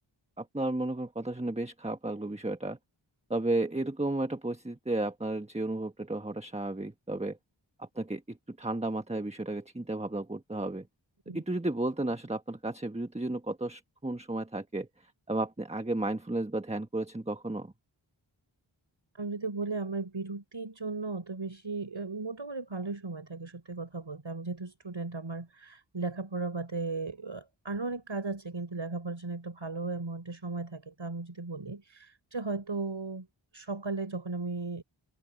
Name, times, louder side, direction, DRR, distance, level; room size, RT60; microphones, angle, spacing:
voice 1, 0.4-2.8 3.3-7.4 7.8-10.9 11.3-17.7, right 2 dB, 15° right, 1.3 m, -33 dB
voice 2, 19.1-33.3 33.5-34.8, right 3 dB, 70° right, 4.6 m, -36 dB
wide cardioid pair, 45°, 46 cm